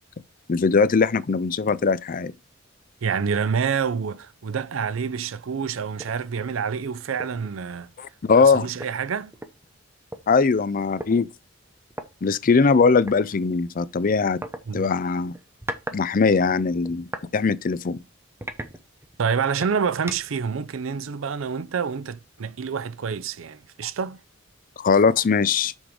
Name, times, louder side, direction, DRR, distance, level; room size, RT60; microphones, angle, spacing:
voice 1, 0.5-2.3 8.0-8.7 10.3-11.3 12.2-14.4 14.7-15.3 15.9-17.1 17.3-18.0 24.8-25.7, left 4 dB, 45° left, 0.5 m, -20 dB
voice 2, 3.0-7.9 8.4-9.3 14.7-14.9 19.2-24.2, right 6 dB, 90° right, 0.5 m, -27 dB
sound 1, 6.0-6.2 6.6-6.8 7.2-7.5 8.4-8.5 8.8-10.2 11.0-11.1 11.9-12.1 13.1-13.2 14.4-14.6 15.3-16.0 16.3-17.3 17.8-17.9 18.4-19.2 19.6-20.4, right 1 dB, 10° right, 0.8 m, -37 dB
6.3 x 5.1 x 4.9 m
head